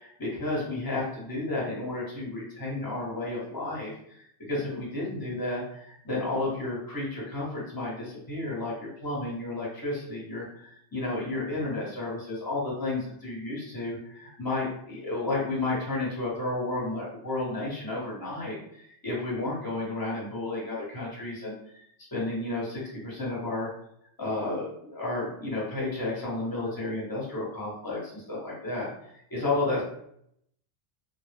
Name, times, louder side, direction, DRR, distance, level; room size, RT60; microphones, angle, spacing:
voice 1, 0.0-21.8 22.1-23.7 24.2-29.8, left 2 dB, 20° left, -6 dB, 0.8 m, -32 dB
2.0 x 2.0 x 3.2 m, 0.72 s
omnidirectional pair, 1.1 m